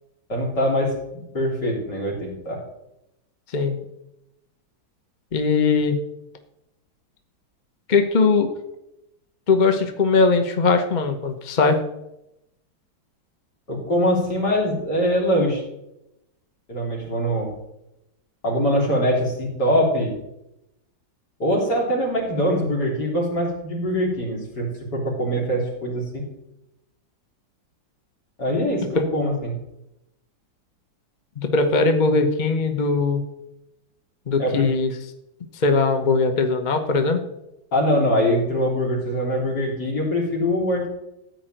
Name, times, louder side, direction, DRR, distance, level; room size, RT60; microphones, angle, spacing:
voice 1, 0.3-0.9 1.3-2.6 13.7-15.6 16.7-17.5 18.4-20.1 21.4-26.2 28.4-29.5 34.4-34.7 37.7-40.9, equal, 60° left, -1 dB, 4.2 m, -23 dB
voice 2, 5.3-5.9 7.9-8.5 9.5-11.8 29.0-29.1 31.4-33.2 34.3-34.9 35.5-37.2, left 4 dB, 30° left, 6 dB, 0.9 m, -20 dB
14.5 x 4.9 x 9.0 m, 0.87 s
omnidirectional pair, 2.0 m